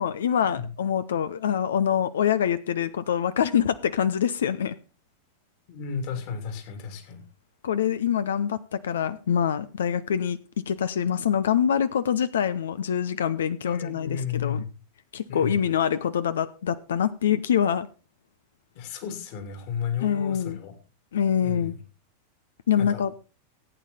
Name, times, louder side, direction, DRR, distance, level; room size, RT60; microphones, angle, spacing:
voice 1, 0.0-4.7 7.6-10.4 10.7-14.6 15.1-17.9 20.0-20.6 21.1-21.7 22.7-23.2, left 8 dB, 65° left, 14 dB, 0.6 m, -25 dB
voice 2, 5.7-7.2 13.6-14.6 15.3-15.6 18.7-20.7 21.4-21.7 22.8-23.0, left 7 dB, 45° left, 7 dB, 2.9 m, -33 dB
15.0 x 9.0 x 4.2 m, 0.33 s
figure-of-eight pair, 90°, 0 cm